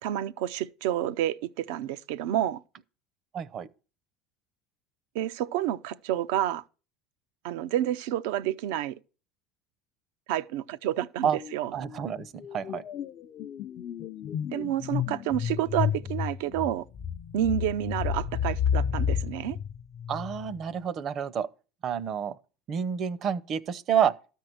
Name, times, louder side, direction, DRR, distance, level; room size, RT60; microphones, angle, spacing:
voice 1, 0.0-2.6 5.1-6.6 7.4-9.0 10.3-11.7 14.5-16.8 17.3-19.6, right 12 dB, 80° right, 0.6 m, -29 dB
voice 2, 3.3-3.7 11.2-11.4 11.7-12.8 20.1-21.5 21.8-22.4 22.7-24.1, right 8 dB, 45° right, 0.8 m, -29 dB
sound 1, 11.2-11.6 11.8-20.6, left 8 dB, 45° left, 0.6 m, -31 dB
13.0 x 4.6 x 7.9 m
supercardioid pair, 105°, 0 cm